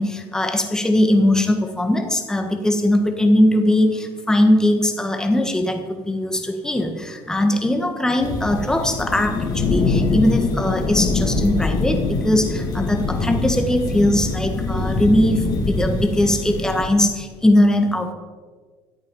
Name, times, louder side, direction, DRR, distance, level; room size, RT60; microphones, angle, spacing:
voice 1, 0.0-18.1, left 1 dB, 5° left, 5 dB, 1.4 m, -20 dB
sound 1, 8.2-16.8, left 3 dB, 35° left, 2.3 m, -23 dB
14.5 x 11.5 x 5.5 m, 1.5 s
cardioid pair, 170°, 10 cm